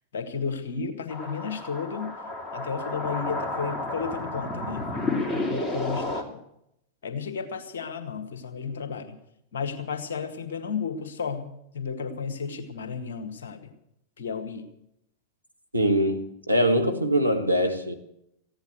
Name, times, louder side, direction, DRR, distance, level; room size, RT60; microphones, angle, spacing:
voice 1, 0.1-2.1 2.5-6.4 7.0-9.2 9.5-11.5 11.7-13.7 14.2-14.7, left 5 dB, 60° left, 1.8 m, -33 dB
sound 1, 1.1-6.2, left 2 dB, 15° left, 2.7 m, -31 dB
voice 2, 15.7-18.0, equal, 90° right, 1.2 m, -23 dB
15.5 x 10.5 x 8.1 m
figure-of-eight pair, 90°, 0 cm